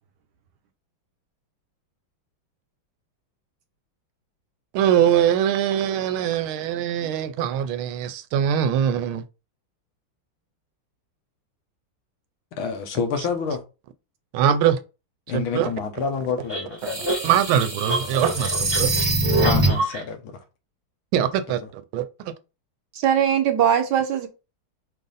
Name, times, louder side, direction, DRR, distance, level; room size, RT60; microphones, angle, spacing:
voice 1, 4.7-9.2 14.3-14.8 15.3-15.7 17.2-18.9 21.1-21.6 21.9-22.3, right 9 dB, 90° right, 1.4 m, -22 dB
voice 2, 12.6-13.6 15.3-17.1 19.3-20.4 21.6-21.7, left 5 dB, 85° left, 1.7 m, -28 dB
sound 1, 16.5-20.0, right 2 dB, 20° right, 0.9 m, -23 dB
voice 3, 22.9-24.3, right 9 dB, 70° right, 1.1 m, -20 dB
5.2 x 2.6 x 3.9 m
omnidirectional pair, 2.2 m